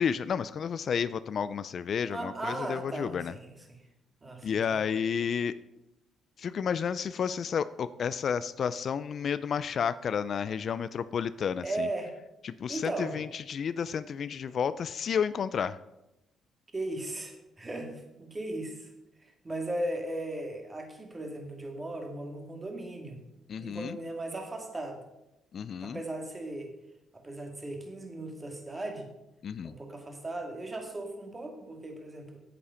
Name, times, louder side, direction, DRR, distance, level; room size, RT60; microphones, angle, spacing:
voice 1, 0.0-3.3 4.4-5.6 6.4-11.9 12.4-15.8 23.5-24.0 25.5-26.0 29.4-29.7, left 7 dB, 55° left, 15 dB, 0.4 m, -31 dB
voice 2, 2.1-3.8 4.2-4.8 11.6-12.1 12.7-13.2 16.7-18.9 19.2-23.2 23.6-25.0 25.8-26.7 27.1-29.1 29.6-32.4, right 1 dB, 25° right, 3 dB, 2.1 m, -37 dB
8.5 x 8.4 x 5.6 m, 0.91 s
cardioid pair, 90°, 0 cm